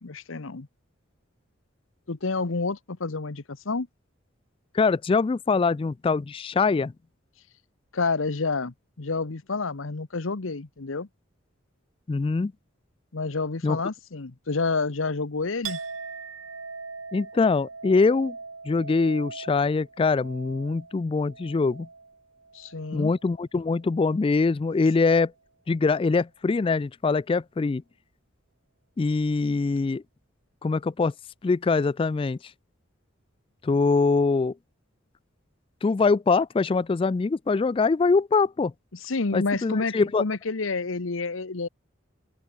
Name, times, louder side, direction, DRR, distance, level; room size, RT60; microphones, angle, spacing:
voice 1, 0.0-0.7 2.1-3.9 7.9-11.1 13.1-15.8 22.5-23.1 38.9-41.7, left 3 dB, 80° left, 1.0 m, -29 dB
voice 2, 4.7-6.9 12.1-12.5 13.6-13.8 17.1-18.4 18.7-21.9 22.9-25.3 25.7-27.8 29.0-30.0 30.6-31.1 31.4-32.4 33.6-34.5 35.8-38.7 39.3-40.2, left 4 dB, 25° left, 0.3 m, -23 dB
Chink clink, 15.6-23.3 23.7-24.3, right 4 dB, 90° right, 4.4 m, -41 dB
open air
head